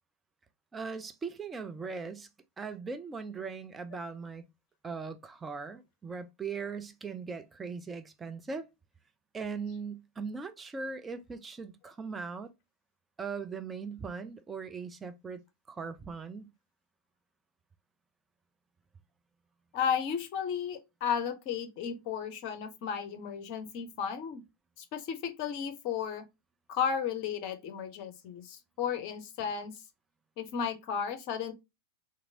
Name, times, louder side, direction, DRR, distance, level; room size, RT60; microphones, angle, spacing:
voice 1, 0.7-2.3 2.6-4.4 4.8-8.7 9.3-12.5 13.2-15.4 15.7-16.5, right 5 dB, 15° right, 0.4 m, -39 dB
voice 2, 19.7-24.4 24.8-26.2 26.7-29.7 30.4-31.5, left 7 dB, 45° left, 0.6 m, -34 dB
2.9 x 2.5 x 2.6 m
figure-of-eight pair, 90°, 0 cm